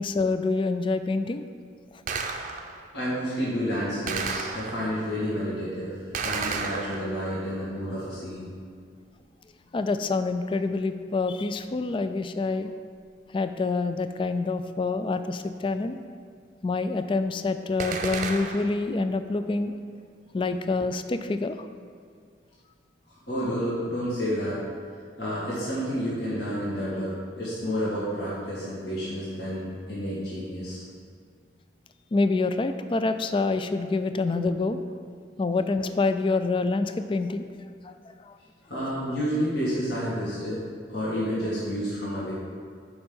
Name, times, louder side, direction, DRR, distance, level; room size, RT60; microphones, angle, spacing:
voice 1, 0.0-1.5 9.7-12.7 13.3-16.0 16.6-19.7 20.3-21.7 32.1-34.8 35.4-37.9 38.2-38.4, left 3 dB, 30° left, 10 dB, 0.3 m, -27 dB
Gunshot gunfire, 2.1-2.9 4.1-5.0 6.1-7.4 17.8-18.9, right 4 dB, 45° right, 0.5 m, -32 dB
voice 2, 2.9-8.5 23.3-24.6 25.2-30.8 38.7-40.6 40.9-42.3, equal, 60° left, -10 dB, 2.1 m, -30 dB
7.0 x 5.3 x 5.5 m, 2.1 s
head